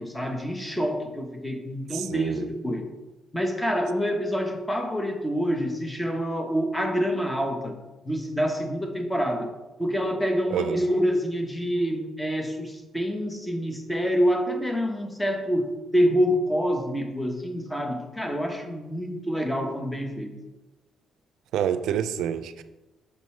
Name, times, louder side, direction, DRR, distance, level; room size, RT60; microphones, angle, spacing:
voice 1, 0.0-2.8 3.3-7.8 8.0-9.5 9.8-20.3, equal, 10° left, 4 dB, 1.0 m, -27 dB
voice 2, 1.9-2.5 10.5-10.8 21.5-22.6, right 9 dB, 85° right, 12 dB, 0.4 m, -27 dB
6.5 x 5.2 x 3.2 m, 1.1 s
cardioid pair, 90°, 0 cm